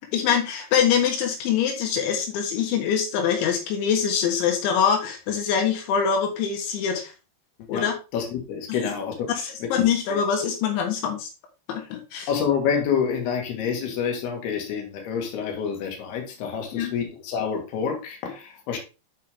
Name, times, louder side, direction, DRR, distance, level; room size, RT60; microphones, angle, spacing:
voice 1, 0.0-7.1 7.7-7.9 9.4-11.3 11.7-12.3 16.7-16.9, left 7 dB, 85° left, 3.9 m, -24 dB
voice 2, 7.6-10.2 12.3-18.8, left 7 dB, 65° left, 3.6 m, -28 dB
8.4 x 6.0 x 3.6 m
omnidirectional pair, 5.2 m